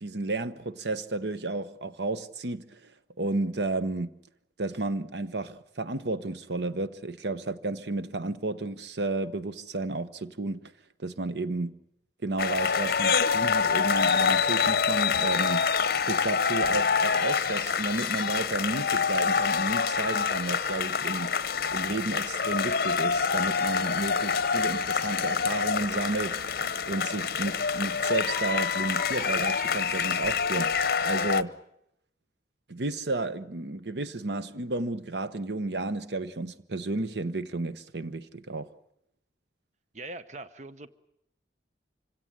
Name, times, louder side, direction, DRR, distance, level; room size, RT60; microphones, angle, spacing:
voice 1, 0.0-2.9 3.2-4.1 4.6-10.7 11.0-11.7 12.2-15.6 16.1-21.3 21.7-26.4 26.9-31.5 32.7-38.7, right 2 dB, 70° right, 0.9 m, -32 dB
sound 1, 12.4-31.4, left 6 dB, 55° left, 0.9 m, -26 dB
voice 2, 39.9-40.9, right 2 dB, 40° right, 0.9 m, -41 dB
25.5 x 17.0 x 9.9 m
head